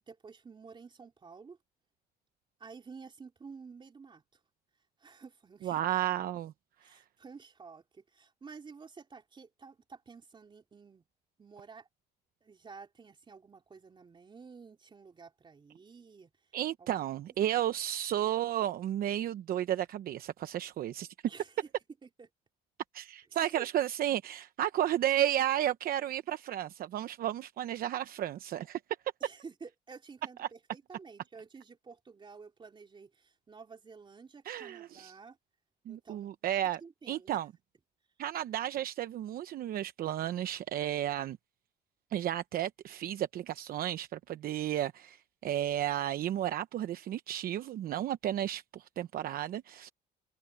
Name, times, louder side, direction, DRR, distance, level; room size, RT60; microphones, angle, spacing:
voice 1, 0.0-1.6 2.6-4.2 5.0-5.8 6.8-11.0 11.4-11.9 12.4-16.3 16.8-17.1 21.3-21.6 22.0-22.3 23.3-23.7 29.2-35.4 35.9-36.3 36.8-37.4, right 5 dB, 30° right, 3.3 m, -51 dB
voice 2, 5.6-6.5 16.5-21.1 22.9-28.8 30.4-30.5 34.4-35.1 35.9-36.8 37.1-37.5 38.2-41.4 42.1-49.9, right 12 dB, 60° right, 0.9 m, -33 dB
cardioid pair, 110°, 17 cm